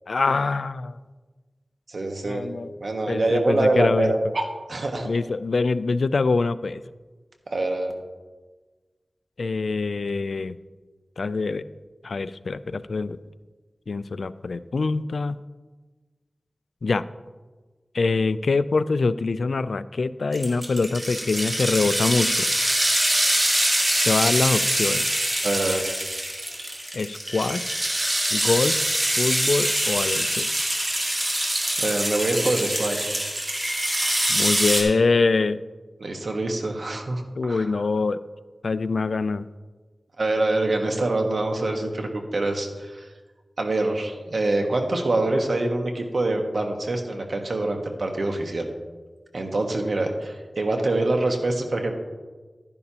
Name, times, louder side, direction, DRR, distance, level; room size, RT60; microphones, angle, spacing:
voice 1, 0.1-0.9 2.2-2.7 3.1-4.1 5.0-6.8 9.4-10.6 11.2-11.6 12.0-13.2 13.9-15.4 16.8-17.0 17.9-22.5 24.0-25.1 26.9-27.7 28.3-28.8 29.2-30.5 34.3-35.6 37.4-38.2 38.6-39.5, left 3 dB, 80° left, 15 dB, 0.3 m, -24 dB
voice 2, 1.9-2.4 2.8-5.1 7.5-7.9 25.4-25.8 31.8-33.2 36.0-37.7 40.2-43.1 43.6-48.7 49.3-51.9, right 2 dB, 70° right, 3 dB, 1.3 m, -25 dB
sound 1, 20.3-34.8, right 1 dB, 25° right, 1.8 m, -24 dB
11.0 x 10.5 x 2.9 m, 1.3 s
wide cardioid pair, 85°, 0 cm